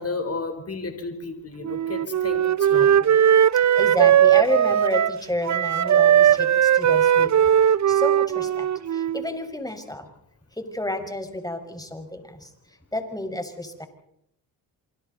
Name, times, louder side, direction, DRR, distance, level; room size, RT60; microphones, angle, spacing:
voice 1, 0.0-3.1, left 3 dB, 30° left, 7 dB, 4.0 m, -33 dB
Wind instrument woodwind instrument, 1.6-5.2 5.5-9.3, right 10 dB, 35° right, 0.7 m, -18 dB
voice 2, 3.5-10.1 10.6-12.5 12.9-13.9, left 1 dB, 5° left, 5 dB, 5.4 m, -31 dB
27.5 x 25.0 x 4.1 m, 0.76 s
hypercardioid pair, 50°, 49 cm